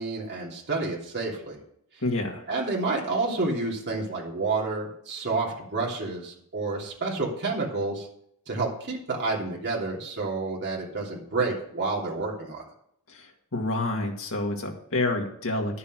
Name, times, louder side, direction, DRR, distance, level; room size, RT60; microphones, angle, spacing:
voice 1, 0.0-1.6 2.5-8.1 8.5-12.6, right 3 dB, 50° right, -2 dB, 3.1 m, -29 dB
voice 2, 2.0-2.4 13.1-13.2 13.5-15.8, left 2 dB, 65° left, 1 dB, 2.1 m, -28 dB
10.5 x 6.9 x 6.3 m, 0.71 s
head